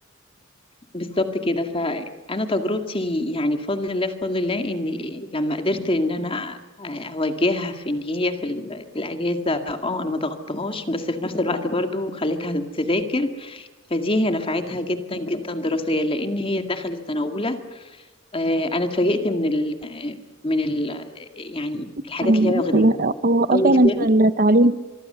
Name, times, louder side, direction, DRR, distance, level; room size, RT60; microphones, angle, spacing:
voice 1, 0.9-17.8 18.3-22.8 23.5-24.0, left 1 dB, 25° left, 7 dB, 2.0 m, -25 dB
voice 2, 22.2-24.7, right 2 dB, 45° right, 14 dB, 0.8 m, -18 dB
24.0 x 24.0 x 6.8 m, 1.2 s
head